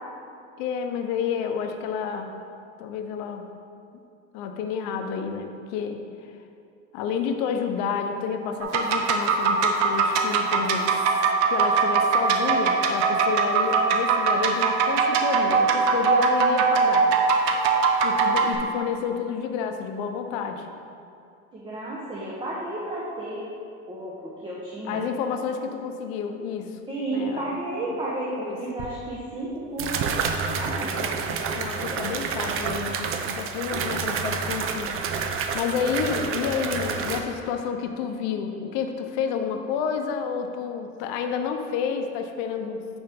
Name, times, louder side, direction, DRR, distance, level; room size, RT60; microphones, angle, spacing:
voice 1, 0.6-2.3 2.8-3.5 4.3-6.3 6.9-11.1 11.5-17.1 18.0-20.7 24.8-26.8 27.1-27.5 28.4-28.6 31.0-35.1 35.5-43.0, left 6 dB, 65° left, 5 dB, 0.8 m, -30 dB
sound 1, 8.6-18.6, right 5 dB, 80° right, 0.8 m, -22 dB
voice 2, 21.5-23.4 23.9-25.0 26.9-30.2 30.6-31.0 31.9-32.0, right 2 dB, 15° right, -6 dB, 0.9 m, -32 dB
sound 2, 28.8-28.9 29.8-37.2, right 5 dB, 40° right, 0.5 m, -29 dB
8.8 x 4.5 x 3.5 m, 2.5 s
supercardioid pair, 125°, 33 cm